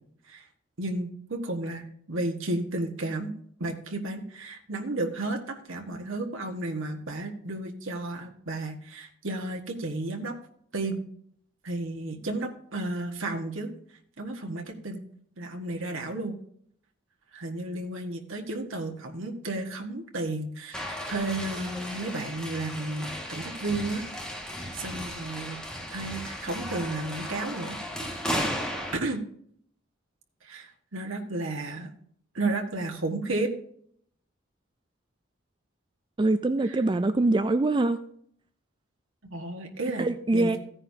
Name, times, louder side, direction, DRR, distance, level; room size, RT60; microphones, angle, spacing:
voice 1, 0.8-3.3 3.6-10.3 10.7-11.1 11.6-13.7 14.2-15.0 15.4-16.4 17.3-24.0 24.7-25.6 25.9-27.8 28.9-29.2 30.4-31.9 32.3-33.5 36.6-36.8 39.2-40.6, right 2 dB, 75° right, 2 dB, 1.6 m, -33 dB
sound 1, 20.7-29.0, equal, 5° left, 1.8 m, -35 dB
voice 2, 36.2-38.0 40.0-40.6, right 2 dB, 25° right, 11 dB, 0.3 m, -24 dB
15.5 x 9.7 x 2.8 m, 0.64 s
head